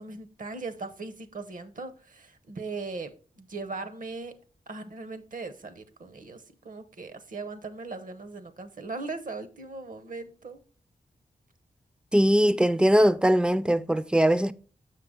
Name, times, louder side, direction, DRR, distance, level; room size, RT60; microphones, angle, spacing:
voice 1, 0.0-3.1 3.4-4.3 4.7-10.6, right 3 dB, 65° right, 0.9 m, -39 dB
voice 2, 12.1-14.5, equal, 5° right, 0.3 m, -21 dB
7.2 x 5.7 x 3.7 m
wide cardioid pair, 90°, 15 cm